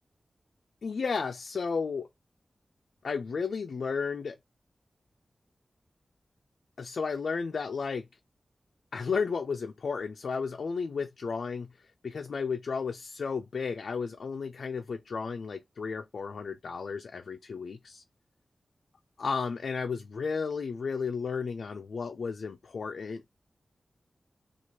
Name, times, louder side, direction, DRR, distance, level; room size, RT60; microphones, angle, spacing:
voice 1, 0.8-2.1 3.0-4.4 6.8-8.1 8.9-18.0 19.2-23.2, left 5 dB, 80° left, 0.4 m, -33 dB
3.1 x 2.4 x 2.8 m
wide cardioid pair, 105°, 0 cm